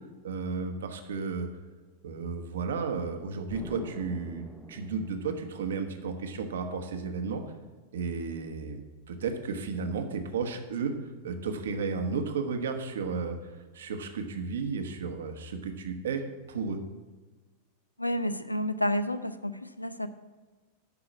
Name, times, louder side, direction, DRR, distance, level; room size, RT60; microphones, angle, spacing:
voice 1, 0.2-1.5 2.0-7.4 7.9-8.8 9.1-16.8, right 5 dB, 65° right, 6 dB, 1.0 m, -33 dB
Explosion, 3.5-6.2, left 1 dB, 5° left, 0.7 m, -46 dB
voice 2, 18.0-20.1, equal, 85° left, 12 dB, 0.5 m, -30 dB
11.0 x 4.9 x 7.2 m, 1.3 s
figure-of-eight pair, 90°, 0 cm